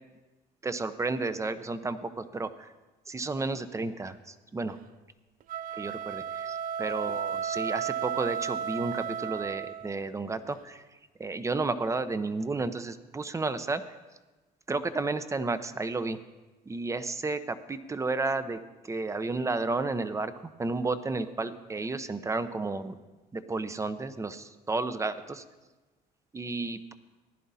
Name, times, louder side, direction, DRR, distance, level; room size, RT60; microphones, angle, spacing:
voice 1, 0.6-2.7 3.1-4.8 5.7-10.8 11.2-13.8 14.7-16.2 16.7-23.0 23.3-25.4 26.3-26.9, right 3 dB, 15° right, 12 dB, 0.7 m, -32 dB
sound 1, 5.4-10.0, right 8 dB, 55° right, 0.4 m, -33 dB
15.0 x 11.0 x 4.2 m, 1.2 s
cardioid pair, 110°, 17 cm